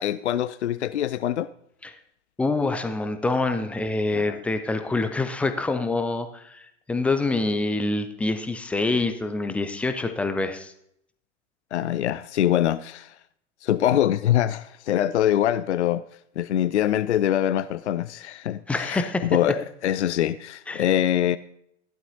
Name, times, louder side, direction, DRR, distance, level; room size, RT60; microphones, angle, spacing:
voice 1, 0.0-1.5 4.1-4.4 11.7-13.1 13.6-16.0 16.4-21.4, left 11 dB, 65° left, 0.5 m, -24 dB
voice 2, 2.4-10.7 18.7-19.3 20.7-20.8, left 3 dB, 5° left, 0.4 m, -26 dB
15.5 x 11.5 x 2.7 m
figure-of-eight pair, 100°, 38 cm